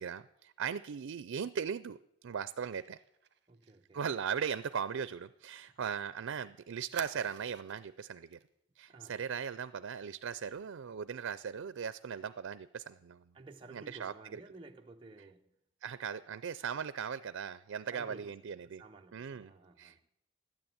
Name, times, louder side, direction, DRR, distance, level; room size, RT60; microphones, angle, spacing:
voice 1, 0.0-3.0 3.9-8.4 8.8-13.3 13.7-14.4 15.8-18.8 19.1-19.5 19.8-20.1, right 7 dB, 85° right, 0.4 m, -38 dB
Fire, 2.6-6.1 6.3-6.4 6.9-7.9 8.3-8.5 8.8-9.0, right 7 dB, 55° right, 0.9 m, -51 dB
voice 2, 3.5-4.0 5.7-5.8 8.9-9.2 13.3-15.5 17.9-20.0, right 3 dB, 25° right, 0.5 m, -54 dB
12.5 x 9.7 x 8.9 m
head